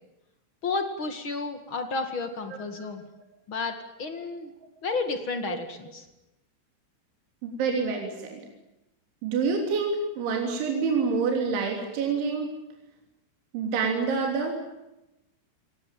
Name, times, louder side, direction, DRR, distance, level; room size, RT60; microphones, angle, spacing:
voice 1, 0.6-3.0 3.5-3.7 4.0-4.5 4.8-6.0, left 3 dB, 50° left, 6 dB, 1.5 m, -31 dB
voice 2, 7.4-8.4 9.2-12.5 13.5-14.6, right 5 dB, 70° right, 1 dB, 5.5 m, -27 dB
29.0 x 18.5 x 9.2 m, 0.93 s
omnidirectional pair, 5.6 m